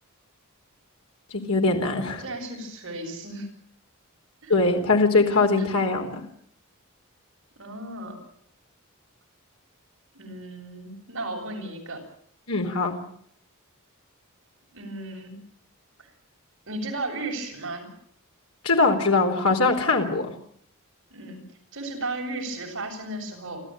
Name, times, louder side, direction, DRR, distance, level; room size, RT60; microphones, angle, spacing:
voice 1, 1.5-2.2 4.5-6.2 12.5-12.9 18.6-20.3, left 3 dB, 80° left, 3 dB, 4.1 m, -21 dB
voice 2, 2.2-3.5 4.4-4.5 5.6-5.7 7.6-8.2 10.1-12.0 14.7-15.4 16.7-17.9 21.1-21.4 21.7-23.6, right 2 dB, 65° right, 1 dB, 7.5 m, -34 dB
28.0 x 13.5 x 9.1 m, 0.66 s
head